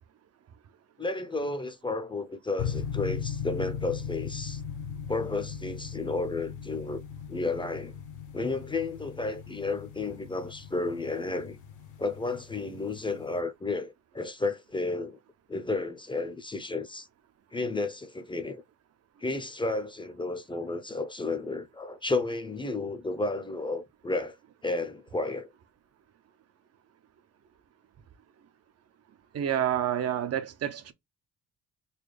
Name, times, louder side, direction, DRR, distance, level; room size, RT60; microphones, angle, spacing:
voice 1, 1.0-4.6 5.1-7.0 7.3-7.9 8.3-11.6 12.0-15.2 15.5-17.1 17.5-18.6 19.2-24.4 24.6-25.5, left 3 dB, 15° left, 0.6 m, -32 dB
sound 1, 2.6-13.4, left 7 dB, 80° left, 0.9 m, -38 dB
voice 2, 29.3-30.9, right 10 dB, 55° right, 0.6 m, -28 dB
4.1 x 2.3 x 3.2 m
cardioid pair, 90°, 30 cm